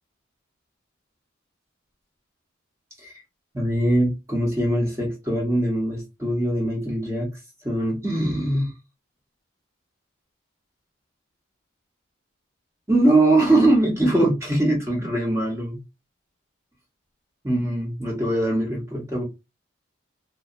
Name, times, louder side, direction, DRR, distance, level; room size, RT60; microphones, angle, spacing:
voice 1, 3.5-7.3 7.6-8.7 12.9-15.8 17.4-19.2, right 1 dB, 15° right, 0.7 m, -22 dB
2.8 x 2.1 x 2.5 m
head